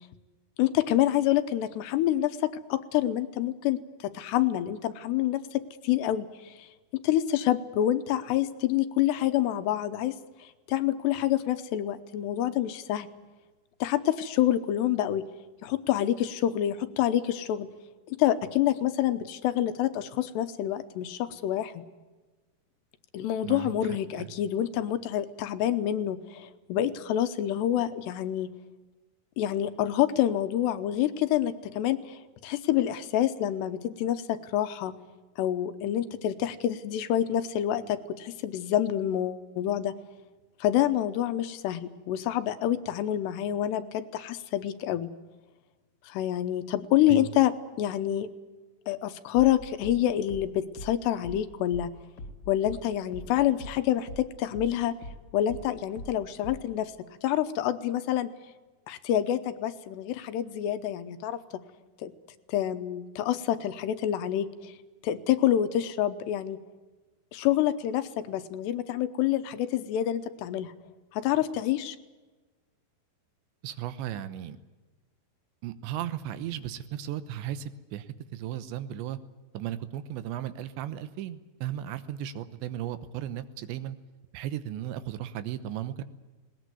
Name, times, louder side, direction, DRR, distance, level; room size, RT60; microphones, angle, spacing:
voice 1, 0.6-6.7 7.0-13.1 13.8-15.3 15.6-17.7 18.2-21.8 23.1-28.5 29.4-34.9 35.4-40.0 40.6-45.1 46.1-47.5 47.8-48.3 48.9-51.9 52.5-55.0 55.3-56.9 57.2-58.3 58.9-61.4 62.0-62.1 62.5-64.8 65.0-66.6 67.3-70.7 71.1-72.0, left 12 dB, 80° left, 10 dB, 2.9 m, -27 dB
voice 2, 23.4-24.3 47.1-47.3 73.6-74.6 75.6-79.2 79.5-84.0 84.3-86.0, right 11 dB, 90° right, 12 dB, 3.3 m, -36 dB
sound 1, 49.3-54.3 54.5-56.8, left 1 dB, 30° left, 2.2 m, -42 dB
19.5 x 19.5 x 9.5 m, 1.2 s
omnidirectional pair, 5.1 m